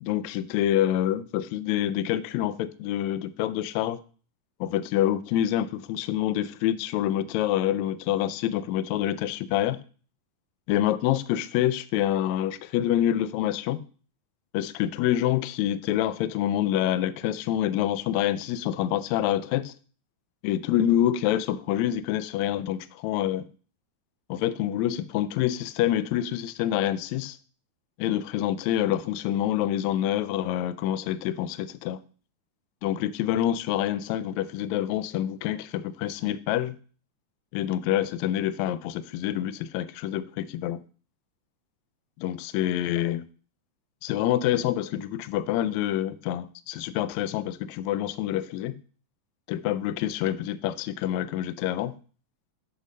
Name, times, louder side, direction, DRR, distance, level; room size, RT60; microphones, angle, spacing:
voice 1, 0.0-4.0 4.6-9.8 10.7-13.8 14.5-19.7 20.4-23.4 24.3-27.4 28.0-32.0 32.8-36.8 37.5-40.8 42.2-43.3 44.0-48.8 49.5-51.9, left 12 dB, 80° left, 1.7 m, -27 dB
7.1 x 4.0 x 6.4 m
omnidirectional pair, 3.5 m